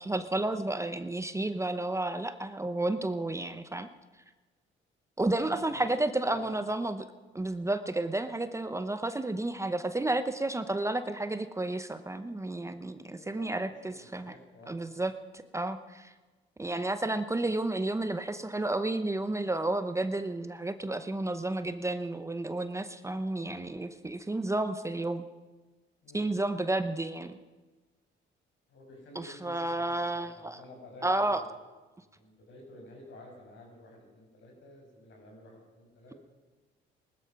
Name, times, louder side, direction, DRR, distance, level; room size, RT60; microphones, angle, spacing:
voice 1, 0.0-3.9 5.2-7.0 7.3-14.4 14.7-16.1 16.6-25.3 26.1-27.4 29.1-30.6 31.0-31.4, right 2 dB, 15° right, 10 dB, 0.8 m, -31 dB
voice 2, 5.3-6.5 13.2-13.5 13.9-14.8 26.0-26.3 28.7-31.5 32.1-36.1, left 1 dB, 70° left, 1 dB, 5.8 m, -51 dB
19.0 x 13.0 x 5.9 m, 1.3 s
cardioid pair, 90°, 20 cm